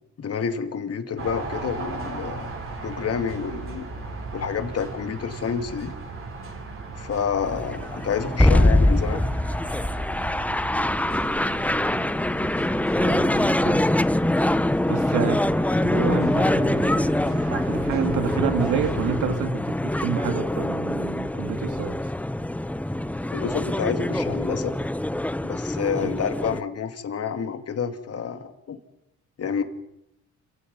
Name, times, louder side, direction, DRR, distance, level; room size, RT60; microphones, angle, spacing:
voice 1, 0.2-3.9 4.3-5.9 7.0-9.2 23.3-24.7 25.4-28.8 29.4-29.6, left 6 dB, 55° left, 7 dB, 2.5 m, -29 dB
sound 1, 1.2-19.2, right 3 dB, 45° right, 7.8 m, -37 dB
sound 2, 7.4-26.6, left 1 dB, 5° left, 0.7 m, -24 dB
voice 2, 13.0-13.9 14.9-15.4 15.8-22.0 26.0-26.2, right 8 dB, 80° right, 6 dB, 2.7 m, -29 dB
29.0 x 17.5 x 5.6 m, 0.84 s
cardioid pair, 90°, 30 cm